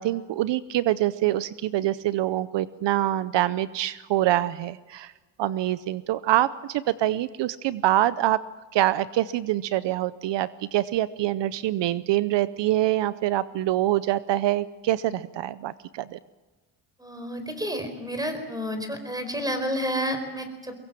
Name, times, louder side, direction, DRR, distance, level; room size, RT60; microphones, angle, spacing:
voice 1, 0.0-5.1 5.4-8.4 8.7-16.2, right 14 dB, 70° right, 16 dB, 0.7 m, -25 dB
voice 2, 17.0-20.7, equal, 10° right, 8 dB, 4.6 m, -30 dB
23.5 x 21.5 x 7.6 m, 1.3 s
cardioid pair, 115°, 44 cm